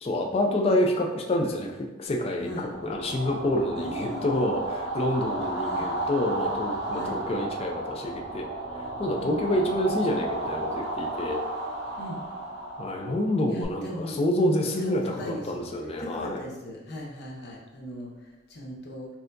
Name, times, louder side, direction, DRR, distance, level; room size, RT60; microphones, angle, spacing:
voice 1, 0.0-1.7 2.0-8.5 9.0-11.4 12.8-16.4, left 1 dB, 30° left, 2 dB, 0.3 m, -27 dB
sound 1, 2.5-13.6, right 2 dB, 60° right, 0.8 m, -33 dB
voice 2, 3.8-4.5 5.4-5.9 6.9-7.2 9.2-9.4 12.0-12.2 13.5-15.6 16.0-19.1, equal, 60° left, -2 dB, 0.8 m, -38 dB
4.2 x 2.7 x 2.5 m, 1.0 s
head